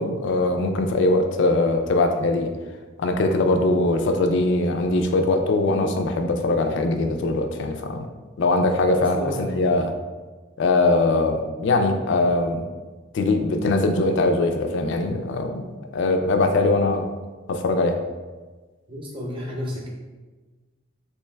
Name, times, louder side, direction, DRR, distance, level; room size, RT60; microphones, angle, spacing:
voice 1, 0.0-2.5 3.0-8.1 8.4-9.9 10.6-12.6 13.1-17.0 17.5-18.0, left 2 dB, 60° left, 5 dB, 0.3 m, -21 dB
voice 2, 8.9-9.6 18.9-19.9, equal, 25° right, -3 dB, 0.7 m, -32 dB
3.2 x 3.0 x 3.3 m, 1.3 s
head